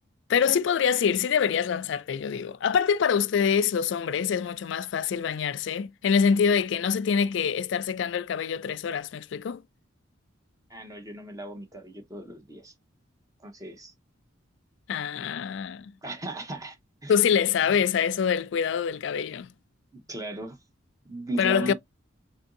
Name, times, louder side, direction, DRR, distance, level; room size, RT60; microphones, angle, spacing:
voice 1, 0.3-9.6 14.9-15.9 17.1-19.5 21.4-21.7, left 7 dB, 65° left, 0.3 m, -25 dB
voice 2, 10.7-12.7 13.4-13.9 16.0-16.8 17.0-17.1 19.9-20.6 21.0-21.7, right 1 dB, 15° right, 0.8 m, -36 dB
3.8 x 2.6 x 3.6 m
head